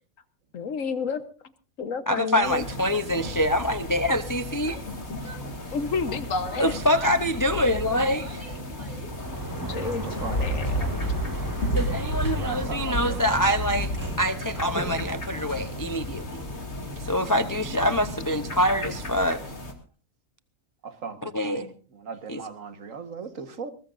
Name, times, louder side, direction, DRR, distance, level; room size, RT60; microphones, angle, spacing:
voice 1, 0.5-1.2 1.8-2.7 5.7-6.7 9.6-10.9, left 5 dB, 70° left, 1.6 m, -30 dB
voice 2, 2.1-4.8 6.6-8.4 11.7-13.9 14.2-16.4 17.0-19.4 21.2-21.7 22.3-22.4, equal, 25° left, 0.5 m, -25 dB
sound 1, 2.4-19.7, equal, 50° left, 2.9 m, -33 dB
Yell, 4.5-6.1 6.5-9.3, right 2 dB, 90° right, 4.2 m, -46 dB
Sliding door, 9.0-16.8, right 1 dB, 15° right, 2.2 m, -37 dB
voice 3, 9.5-11.0 12.3-13.6 20.8-23.7, right 5 dB, 65° right, 1.8 m, -38 dB
22.0 x 19.5 x 2.6 m
omnidirectional pair, 1.5 m